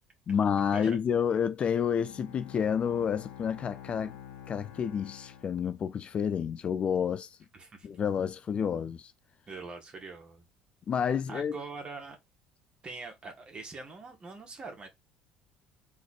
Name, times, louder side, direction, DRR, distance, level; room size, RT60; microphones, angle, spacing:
voice 1, 0.3-4.2 4.5-7.4 7.8-9.1 10.9-11.6, left 7 dB, 35° left, 0.4 m, -29 dB
Bowed string instrument, 1.8-6.3, left 10 dB, 55° left, 1.2 m, -48 dB
voice 2, 7.5-7.9 9.5-10.4 11.3-12.2 12.8-14.9, right 4 dB, 30° right, 1.7 m, -43 dB
3.9 x 3.1 x 4.3 m
figure-of-eight pair, 55°, 3 cm